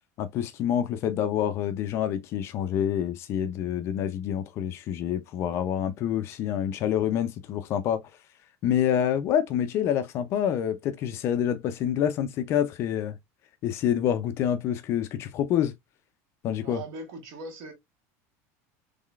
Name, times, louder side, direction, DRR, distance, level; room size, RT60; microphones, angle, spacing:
voice 1, 0.2-8.0 8.6-13.2 13.6-15.7 16.4-16.8, left 9 dB, 35° left, 0.4 m, -27 dB
voice 2, 16.6-17.7, right 2 dB, 50° right, 1.1 m, -39 dB
3.7 x 3.2 x 2.3 m
cardioid pair, 175°, 8 cm